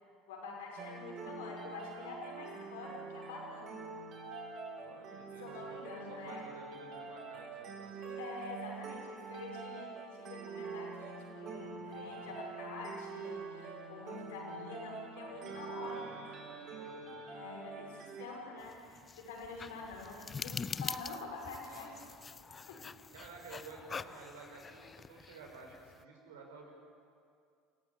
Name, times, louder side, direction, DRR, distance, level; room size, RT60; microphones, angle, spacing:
voice 1, 0.3-3.9 5.4-6.5 8.0-16.2 17.3-22.0 22.7-22.9, left 3 dB, 70° left, -1 dB, 6.1 m, -46 dB
sound 1, 0.8-18.3, right 4 dB, 45° right, 3.5 m, -45 dB
voice 2, 4.8-5.8 6.1-8.3 12.1-12.3 15.2-17.4 19.5-20.1 21.7-21.9 22.5-22.6 23.1-26.7, right 4 dB, 75° right, 1 dB, 5.9 m, -53 dB
sound 2, 18.6-26.0, left 5 dB, 25° left, 0.6 m, -45 dB
27.5 x 15.5 x 9.8 m, 2.3 s
figure-of-eight pair, 65°, 0 cm